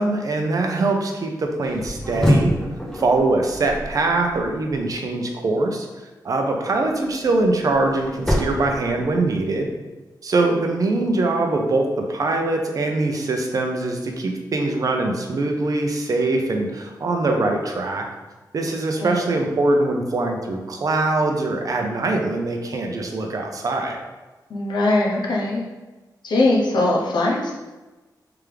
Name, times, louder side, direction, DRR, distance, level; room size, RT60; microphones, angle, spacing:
voice 1, 0.0-2.5 2.9-5.9 6.2-9.7 10.2-18.0 18.5-24.0, right 2 dB, 55° right, 3 dB, 0.6 m, -22 dB
sound 1, 1.6-4.8 7.0-9.6, equal, 5° left, 0.7 m, -26 dB
voice 2, 24.5-25.6 26.2-27.5, left 2 dB, 85° left, -2 dB, 0.8 m, -21 dB
3.4 x 3.4 x 3.3 m, 1.2 s
wide cardioid pair, 150°, 7 cm